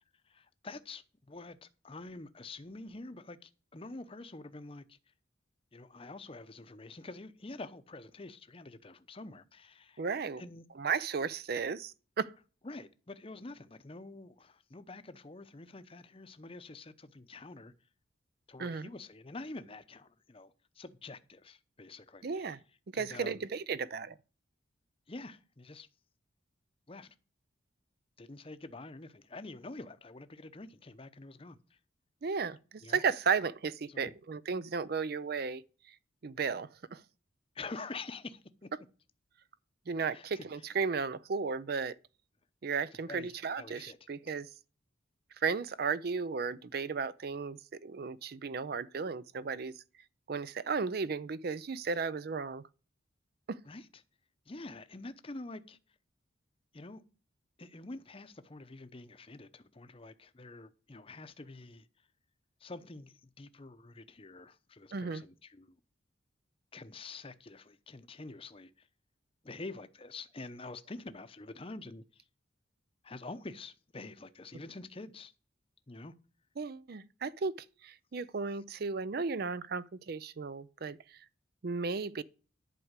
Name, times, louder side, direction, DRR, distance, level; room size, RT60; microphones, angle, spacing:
voice 1, 0.2-5.0 5.7-10.0 10.4-10.6 12.6-17.7 18.5-22.6 22.9-23.5 25.1-25.9 26.9-27.1 28.2-31.8 32.8-33.0 33.9-34.1 37.5-38.7 40.1-40.4 43.1-44.0 44.3-44.4 53.6-53.9 54.5-55.8 56.7-57.0 57.6-61.9 62.6-65.8 66.7-68.9 69.4-72.2 73.0-75.3 75.9-76.1, left 2 dB, 30° left, 0.7 m, -47 dB
voice 2, 10.0-10.4 10.8-12.3 18.6-18.9 22.2-22.6 22.9-24.1 32.2-32.6 32.9-35.6 36.2-37.0 39.9-41.9 42.6-44.5 45.4-49.7 50.3-52.6 53.5-53.6 64.9-65.2 76.6-77.5 77.8-81.0 81.6-82.2, right 5 dB, 50° right, 0.5 m, -34 dB
11.0 x 4.7 x 8.0 m
head